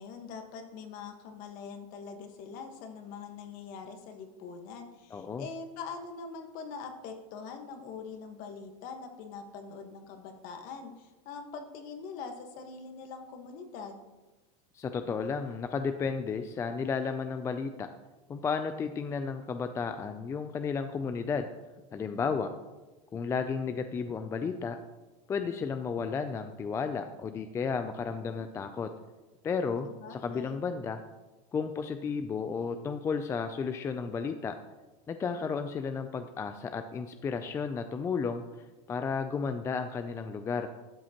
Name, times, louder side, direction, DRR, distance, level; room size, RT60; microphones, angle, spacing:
voice 1, 0.0-14.0 29.8-30.6, left 5 dB, 50° left, 5 dB, 1.3 m, -43 dB
voice 2, 5.1-5.4 14.7-17.9 18.3-21.5 21.9-22.5 23.1-24.8 25.3-28.9 29.4-31.0 31.5-34.5 35.1-38.4 38.9-40.7, left 5 dB, 15° left, 8 dB, 0.3 m, -33 dB
12.0 x 7.5 x 2.9 m, 1.1 s
supercardioid pair, 140°, 18 cm